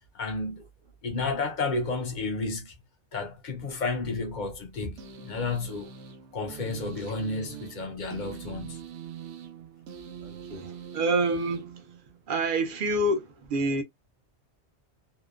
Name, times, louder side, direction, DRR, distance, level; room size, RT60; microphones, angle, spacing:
voice 1, 0.1-0.6 1.0-2.7 3.1-5.9 6.3-8.8, left 3 dB, 50° left, 0.6 m, -31 dB
sound 1, 5.0-12.4, right 8 dB, 90° right, 0.9 m, -43 dB
voice 2, 10.2-11.7 12.3-13.8, right 2 dB, 55° right, 0.7 m, -27 dB
2.8 x 2.1 x 2.3 m
omnidirectional pair, 1.1 m